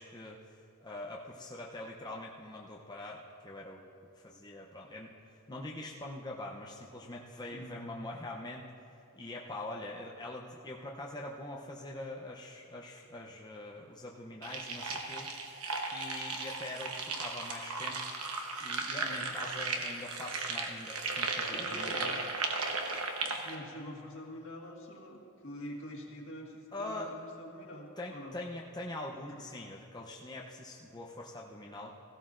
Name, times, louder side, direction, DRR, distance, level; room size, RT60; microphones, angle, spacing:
voice 1, 0.0-3.8 4.1-8.6 9.1-15.6 15.9-18.0 18.6-22.2 26.7-27.1 28.0-31.9, left 2 dB, 20° left, -2 dB, 0.6 m, -43 dB
voice 2, 7.5-7.8 19.0-19.4 21.5-22.1 23.2-28.4 29.3-29.6, equal, 60° left, -1 dB, 1.7 m, -46 dB
sound 1, 14.4-23.5, right 3 dB, 80° right, 1.1 m, -36 dB
16.5 x 16.0 x 2.5 m, 2.6 s
head